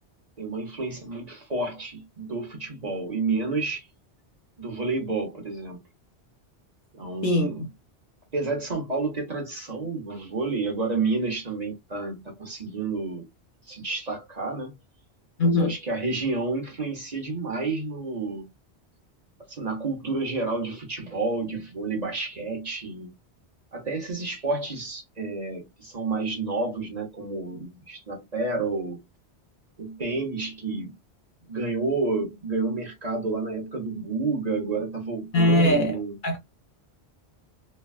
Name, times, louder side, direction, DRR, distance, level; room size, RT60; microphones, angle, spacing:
voice 1, 0.4-3.9 4.6-5.8 6.9-7.6 8.3-13.3 13.7-14.7 15.4-18.5 19.5-23.1 23.7-29.0 29.8-31.0 31.5-36.2, right 3 dB, 40° right, 0.9 m, -30 dB
voice 2, 15.4-15.7 35.3-36.4, left 1 dB, 55° left, 0.7 m, -21 dB
3.2 x 2.2 x 2.3 m
omnidirectional pair, 1.1 m